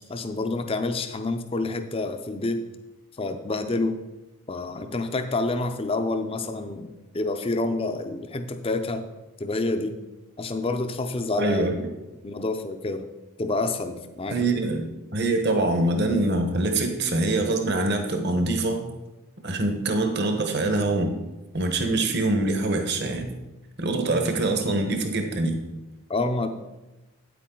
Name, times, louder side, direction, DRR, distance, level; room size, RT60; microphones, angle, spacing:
voice 1, 0.1-2.6 3.2-4.0 4.5-9.1 9.4-10.0 10.4-11.7 12.2-13.1 13.4-14.4 26.1-26.5, left 2 dB, 25° left, 8 dB, 0.5 m, -28 dB
voice 2, 11.3-11.7 14.3-18.8 19.4-21.1 21.5-23.3 23.8-25.6, right 2 dB, 45° right, 5 dB, 1.1 m, -24 dB
8.9 x 8.5 x 3.8 m, 1.0 s
head